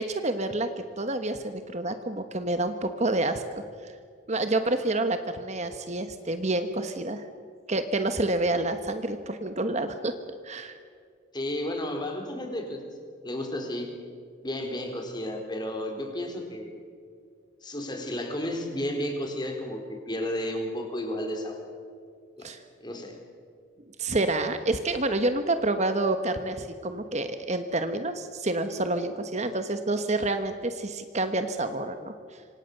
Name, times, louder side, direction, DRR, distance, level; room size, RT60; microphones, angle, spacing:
voice 1, 0.0-3.4 3.8-3.9 4.3-7.2 7.7-10.1 10.4-10.8 22.4-22.6 24.0-32.1, right 2 dB, 35° right, 8 dB, 1.2 m, -28 dB
voice 2, 11.3-12.8 13.2-13.9 14.4-16.7 17.6-21.7 22.4-22.5 22.8-23.1, left 1 dB, 20° left, 3 dB, 3.9 m, -32 dB
27.0 x 25.5 x 6.7 m, 2.2 s
head